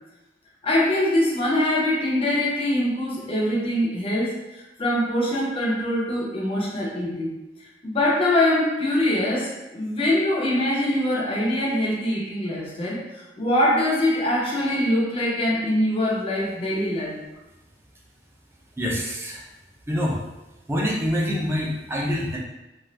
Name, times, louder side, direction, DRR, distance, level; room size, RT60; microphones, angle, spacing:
voice 1, 0.6-7.3 7.8-17.2, left 1 dB, 35° left, -3 dB, 0.7 m, -23 dB
voice 2, 18.8-19.5 19.9-20.2 20.7-22.4, equal, 15° right, -3 dB, 0.5 m, -25 dB
2.6 x 2.4 x 3.2 m, 0.97 s
head